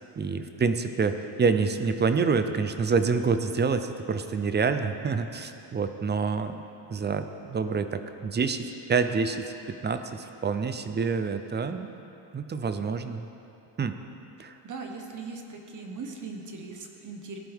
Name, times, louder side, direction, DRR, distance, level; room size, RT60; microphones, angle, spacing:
voice 1, 0.2-6.6 6.9-9.4 9.8-11.9 12.3-13.3 13.8-14.0 14.4-14.5, right 5 dB, 25° right, 9 dB, 0.4 m, -27 dB
voice 2, 14.6-17.4, right 4 dB, 40° right, 2 dB, 1.3 m, -39 dB
18.5 x 11.5 x 3.6 m, 2.9 s
cardioid pair, 160°, 45 cm